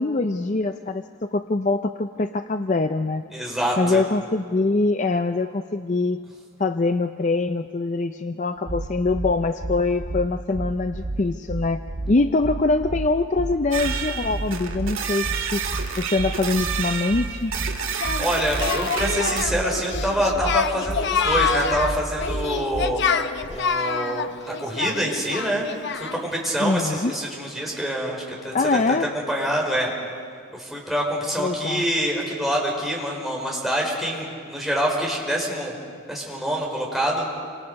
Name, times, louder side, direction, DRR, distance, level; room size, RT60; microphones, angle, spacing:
voice 1, 0.0-3.2 3.8-6.2 6.6-11.8 12.1-15.3 15.5-15.6 16.0-17.5 26.6-27.1 28.5-29.1 31.4-31.8, left 3 dB, 35° left, 8 dB, 0.5 m, -23 dB
voice 2, 3.3-4.0 18.2-23.0 23.5-24.3 24.6-25.7 26.0-28.8 29.3-29.9 30.5-35.7 36.1-37.3, equal, ahead, -3 dB, 4.6 m, -26 dB
sound 1, 8.7-23.1, right 2 dB, 30° right, 0.7 m, -31 dB
sound 2, 13.7-19.4, right 7 dB, 70° right, 2.1 m, -30 dB
Singing, 18.0-26.3, left 5 dB, 55° left, 0.9 m, -26 dB
28.0 x 26.0 x 5.4 m, 2.2 s
head